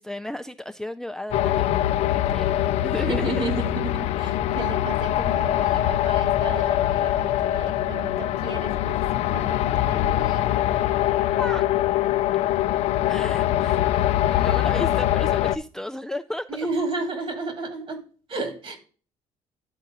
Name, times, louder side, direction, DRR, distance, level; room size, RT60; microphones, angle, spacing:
voice 1, 0.0-3.4 11.4-11.7 13.1-16.7, left 1 dB, 5° left, 0.3 m, -34 dB
sound 1, 1.3-15.6, left 13 dB, 70° left, 0.4 m, -23 dB
voice 2, 2.9-10.9 16.5-18.8, right 3 dB, 50° right, 2.3 m, -33 dB
11.5 x 4.1 x 3.7 m
cardioid pair, 100°, 11 cm